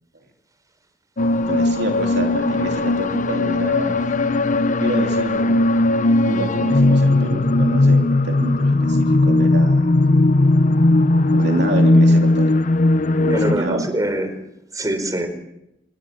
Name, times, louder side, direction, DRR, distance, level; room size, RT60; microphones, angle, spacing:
sound 1, 1.2-13.5, left 2 dB, 45° left, 0.9 m, -17 dB
voice 1, 1.5-4.1 4.8-5.6 6.2-9.9 11.3-12.5 13.2-13.9, right 1 dB, 65° right, 2 dB, 3.0 m, -27 dB
voice 2, 13.3-14.3 14.7-15.3, right 1 dB, 20° right, 9 dB, 4.7 m, -23 dB
27.5 x 23.0 x 7.3 m, 0.84 s
head